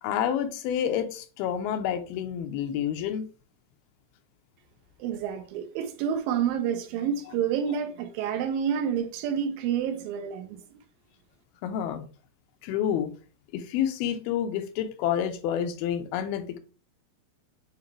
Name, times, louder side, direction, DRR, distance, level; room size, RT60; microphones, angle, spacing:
voice 1, 0.0-3.2 11.6-12.1 12.6-13.1 13.5-16.6, left 9 dB, 85° left, 2.5 m, -29 dB
voice 2, 5.0-10.6, right 8 dB, 80° right, 2.4 m, -29 dB
8.8 x 3.3 x 3.2 m
omnidirectional pair, 4.3 m